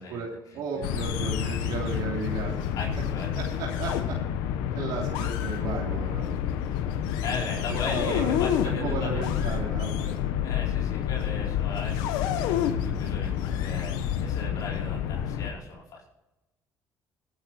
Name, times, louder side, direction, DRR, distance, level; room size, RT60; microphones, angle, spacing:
voice 1, 0.1-2.6 3.4-3.9 4.7-6.3 7.7-8.4 8.8-10.1, right 5 dB, 80° right, -2 dB, 3.1 m, -34 dB
sound 1, 0.8-15.5, left 9 dB, 90° left, 1.1 m, -28 dB
voice 2, 2.7-3.4 7.2-9.2 10.4-16.0, left 4 dB, 65° left, -4 dB, 4.9 m, -37 dB
18.5 x 9.4 x 4.3 m, 0.98 s
supercardioid pair, 80°, 7 cm